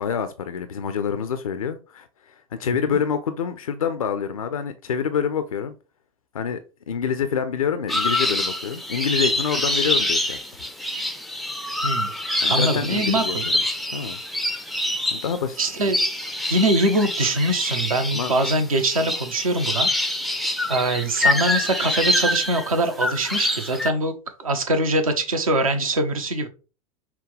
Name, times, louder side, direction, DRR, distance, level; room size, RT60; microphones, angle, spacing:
voice 1, 0.0-5.7 6.3-6.6 6.9-10.4 12.4-13.4 13.9-14.2 15.1-15.6 18.1-18.3, left 7 dB, 75° left, 0.5 m, -26 dB
sound 1, 7.9-23.9, left 1 dB, ahead, 0.4 m, -25 dB
voice 2, 12.5-13.5 15.6-16.0 16.5-19.9 20.7-24.1 24.4-26.5, right 1 dB, 75° right, 0.8 m, -23 dB
5.9 x 2.2 x 3.2 m
figure-of-eight pair, 85°, 18 cm